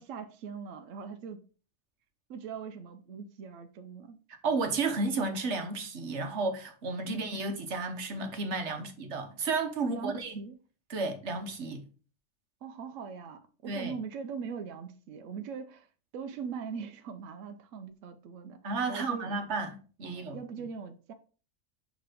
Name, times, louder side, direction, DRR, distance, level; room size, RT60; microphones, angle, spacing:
voice 1, 0.0-1.4 2.3-4.2 7.1-7.3 9.9-10.6 12.6-15.9 16.1-19.3 20.0-21.1, right 6 dB, 85° right, 1.0 m, -41 dB
voice 2, 4.4-10.4 10.9-11.9 13.7-13.9 18.6-20.4, right 3 dB, 65° right, 1.3 m, -32 dB
6.6 x 3.4 x 5.0 m
omnidirectional pair, 1.3 m